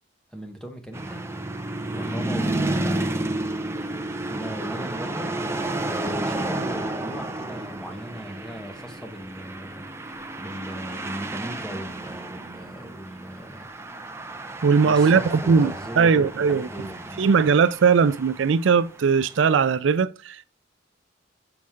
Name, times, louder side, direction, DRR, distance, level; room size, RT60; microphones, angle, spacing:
voice 1, 0.3-1.2 1.8-3.4 4.3-5.3 5.9-9.9 10.4-13.7 14.8-17.3, equal, 5° left, 1.1 m, -38 dB
sound 1, 0.9-19.4, right 2 dB, 15° right, 0.6 m, -31 dB
voice 2, 14.6-16.7 17.2-20.4, right 5 dB, 75° right, 0.4 m, -19 dB
6.2 x 5.9 x 3.6 m
head